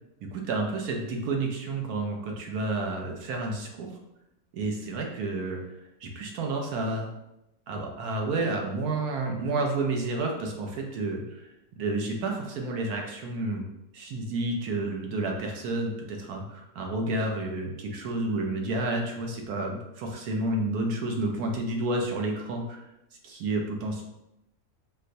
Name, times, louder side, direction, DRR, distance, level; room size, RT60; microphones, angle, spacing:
voice 1, 0.3-4.0 4.5-5.6 6.0-7.1 7.7-13.6 13.9-22.8 23.2-24.0, right 2 dB, 70° right, 1 dB, 1.0 m, -30 dB
4.2 x 2.1 x 2.6 m, 0.88 s
omnidirectional pair, 1.8 m